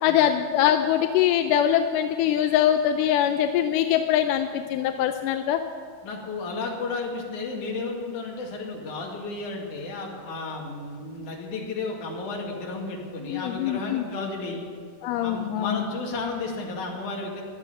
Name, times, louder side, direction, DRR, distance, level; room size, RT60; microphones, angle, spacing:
voice 1, 0.0-5.6 13.3-14.0 15.0-15.8, left 10 dB, 90° left, 7 dB, 2.2 m, -23 dB
voice 2, 6.0-14.7 15.2-17.4, left 3 dB, 70° left, -1 dB, 3.6 m, -33 dB
16.0 x 11.5 x 5.7 m, 2.2 s
omnidirectional pair, 3.7 m